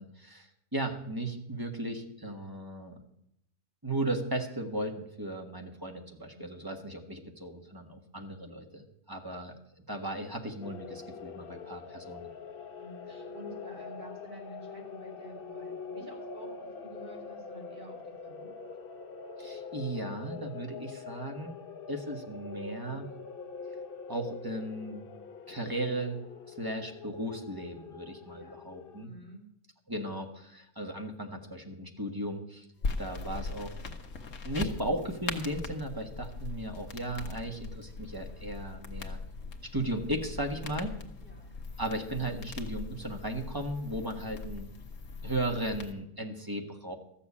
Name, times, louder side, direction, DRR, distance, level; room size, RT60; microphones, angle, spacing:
voice 1, 0.0-3.0 3.8-9.6 9.9-12.3 19.4-21.6 21.9-23.1 24.1-25.1 25.5-26.2 26.5-29.1 29.9-32.7 33.0-33.8 34.4-39.2 39.7-41.0 41.8-44.7 45.2-46.9, right 1 dB, 15° right, 2 dB, 1.5 m, -36 dB
voice 2, 5.5-5.8 6.3-6.8 9.3-9.4 11.7-12.2 12.8-18.5 28.2-28.7 29.0-29.5 32.8-33.0 41.2-41.5 42.2-42.4 44.1-44.5, right 2 dB, 45° right, 0 dB, 3.6 m, -50 dB
sound 1, 10.6-29.1, left 5 dB, 55° left, 0.8 m, -44 dB
sound 2, 32.8-45.9, left 3 dB, 75° left, 1.5 m, -40 dB
13.5 x 7.2 x 8.5 m, 0.77 s
omnidirectional pair, 1.3 m